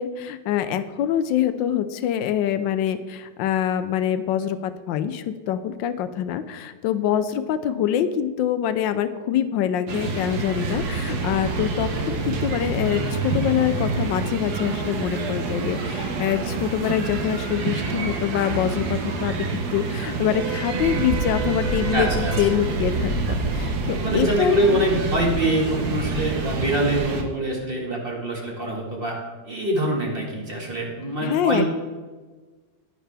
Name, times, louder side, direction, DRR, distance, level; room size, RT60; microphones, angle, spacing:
voice 1, 0.0-24.8 31.2-31.7, left 10 dB, 85° left, 12 dB, 1.3 m, -25 dB
sound 1, 9.9-27.2, right 3 dB, 65° right, 1.5 m, -27 dB
voice 2, 21.9-22.3 24.0-29.2 29.4-31.7, right 1 dB, 30° right, -2 dB, 2.0 m, -24 dB
11.0 x 10.0 x 3.4 m, 1.4 s
omnidirectional pair, 2.0 m